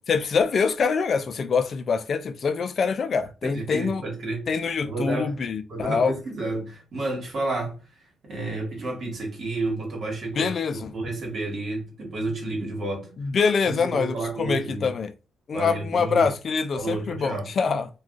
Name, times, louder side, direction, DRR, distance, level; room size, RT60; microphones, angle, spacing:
voice 1, 0.1-4.0 4.5-6.1 10.4-10.9 13.2-15.1 15.5-17.9, left 5 dB, 50° left, 0.4 m, -25 dB
voice 2, 3.4-4.5 4.8-5.3 5.7-7.7 8.2-10.5 10.9-13.1 13.7-14.9 15.5-16.3 16.7-17.5, right 2 dB, 50° right, 1.3 m, -30 dB
2.3 x 2.3 x 3.7 m
cardioid pair, 90°, 0 cm